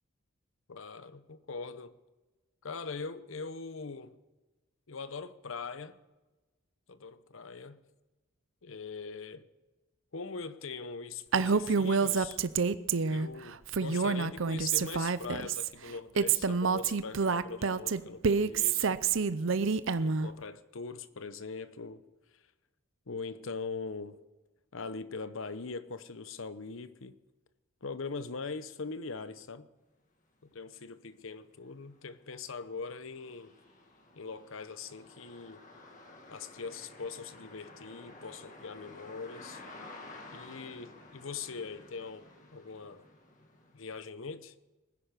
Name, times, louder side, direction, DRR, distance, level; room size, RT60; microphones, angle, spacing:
voice 1, 0.7-1.9 2.6-4.2 4.9-6.0 6.9-7.8 8.6-9.5 10.1-12.4 13.1-19.0 19.9-22.0 23.1-24.2 24.7-27.1 27.8-29.7 30.4-33.5 34.2-35.6 36.3-39.6 40.3-43.0 43.7-44.5, left 4 dB, 70° left, 0.8 m, -42 dB
Female speech woman speaking, 11.3-13.3 13.7-15.7 16.2-20.3, right 5 dB, 65° right, 0.6 m, -28 dB
sound 1, 30.6-30.7 31.1-44.0, left 2 dB, 35° left, 2.0 m, -52 dB
19.0 x 10.5 x 6.7 m
head